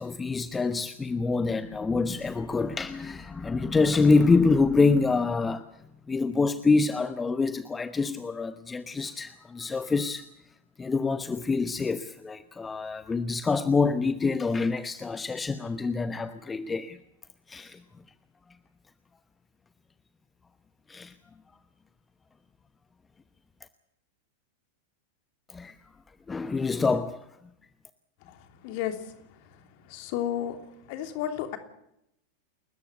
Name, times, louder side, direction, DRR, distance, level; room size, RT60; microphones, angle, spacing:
voice 1, 0.0-5.7 6.1-10.3 10.8-17.0 17.5-17.8 20.9-21.1 25.5-25.7 26.3-27.3, left 4 dB, 15° left, 12 dB, 1.0 m, -26 dB
voice 2, 28.6-29.1 29.9-30.6 30.9-31.6, left 11 dB, 45° left, 7 dB, 3.0 m, -32 dB
29.5 x 14.0 x 8.1 m, 0.79 s
figure-of-eight pair, 90°, 0 cm